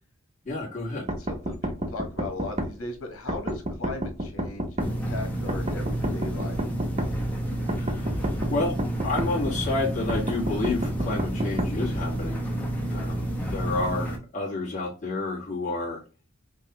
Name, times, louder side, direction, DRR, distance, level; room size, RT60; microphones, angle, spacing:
voice 1, 0.4-1.0 7.7-8.8 9.0-12.4 12.9-16.0, left 2 dB, 35° left, -6 dB, 1.7 m, -30 dB
sound 1, 1.1-2.7 3.3-4.9 5.5-7.1 7.7-9.3 10.1-11.7, right 1 dB, 30° right, 0.6 m, -29 dB
voice 2, 1.2-6.6, left 2 dB, 85° left, 4 dB, 1.2 m, -37 dB
sound 2, 4.8-14.2, right 1 dB, 10° left, 0.8 m, -30 dB
5.3 x 2.3 x 3.0 m, 0.35 s
head